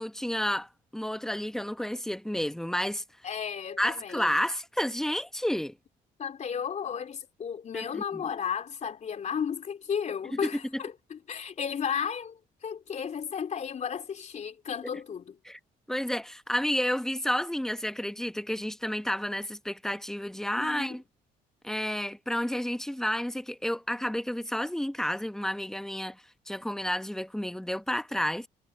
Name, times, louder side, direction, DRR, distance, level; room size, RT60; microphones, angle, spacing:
voice 1, 0.0-3.0 3.8-5.7 7.7-8.2 10.4-10.5 15.4-15.6 15.9-21.0 21.6-28.5, equal, 5° left, 1.3 m, -31 dB
voice 2, 3.2-4.4 6.2-15.4 20.6-21.0, left 7 dB, 45° left, 3.5 m, -34 dB
supercardioid pair, 85°, 16 cm